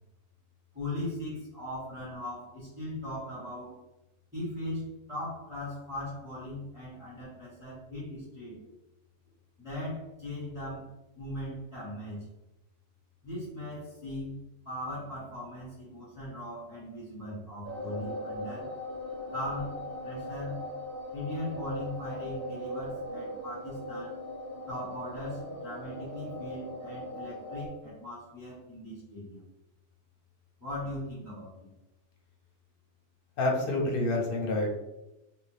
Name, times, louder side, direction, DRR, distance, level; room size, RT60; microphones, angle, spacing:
voice 1, 0.7-3.7 4.3-8.6 9.6-10.8 11.1-12.3 13.2-14.3 14.6-18.7 19.3-20.6 21.1-24.2 24.7-29.4 30.6-31.7, left 1 dB, 5° right, -11 dB, 1.4 m, -39 dB
sound 1, 17.6-27.7, left 1 dB, 45° right, 1.3 m, -39 dB
voice 2, 33.4-34.7, left 2 dB, 55° left, 0 dB, 0.8 m, -28 dB
2.7 x 2.6 x 3.3 m, 0.96 s
omnidirectional pair, 1.2 m